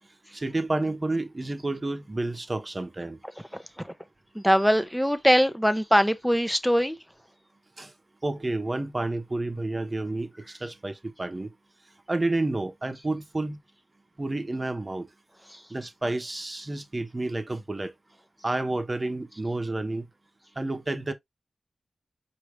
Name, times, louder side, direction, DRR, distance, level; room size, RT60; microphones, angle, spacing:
voice 1, 0.3-3.2 7.8-7.9 8.2-11.5 12.1-13.6 14.2-15.1 15.7-17.9 18.4-20.1 20.6-21.1, right 2 dB, 35° right, 1.0 m, -30 dB
voice 2, 3.5-3.9 4.3-7.0 15.5-15.6, equal, ahead, 0.8 m, -22 dB
4.7 x 2.9 x 3.2 m
cardioid pair, 50°, 0 cm